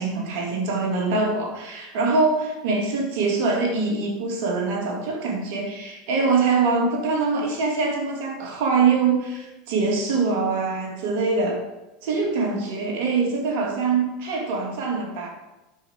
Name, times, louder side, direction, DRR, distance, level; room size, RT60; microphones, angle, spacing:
voice 1, 0.0-11.6 12.0-15.3, right 4 dB, 70° right, 1 dB, 2.6 m, -24 dB
9.6 x 6.2 x 5.1 m, 0.99 s
supercardioid pair, 105°, 0 cm